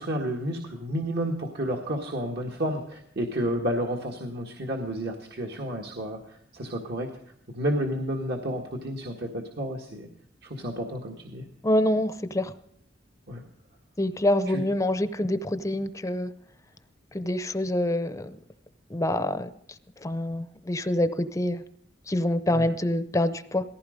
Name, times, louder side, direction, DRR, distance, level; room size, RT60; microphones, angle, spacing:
voice 1, 0.0-6.2 6.5-7.1 7.5-10.1 10.4-11.4 13.3-13.4 14.5-14.6 22.5-22.7, equal, 60° right, 2 dB, 1.8 m, -31 dB
voice 2, 11.6-12.5 14.0-16.3 17.1-18.4 18.9-19.5 20.0-21.6 22.1-23.6, left 1 dB, 15° left, 12 dB, 0.7 m, -26 dB
18.0 x 15.0 x 5.1 m, 0.68 s
head